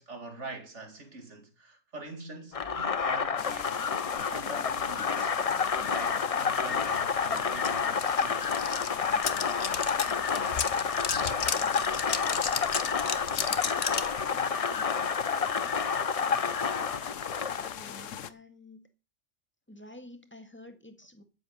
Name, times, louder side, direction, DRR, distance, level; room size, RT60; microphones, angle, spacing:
voice 1, 0.0-3.8 4.3-8.5, right 2 dB, 70° right, 2.9 m, -44 dB
sound 1, 2.5-17.7, left 6 dB, 40° left, 0.6 m, -29 dB
sound 2, 3.4-18.3, left 9 dB, 90° left, 1.2 m, -41 dB
sound 3, 7.4-7.5 7.6-14.1, left 7 dB, 65° left, 1.3 m, -33 dB
voice 2, 17.8-18.9 19.7-21.2, left 1 dB, 10° left, 1.8 m, -49 dB
13.0 x 8.1 x 6.5 m
omnidirectional pair, 1.3 m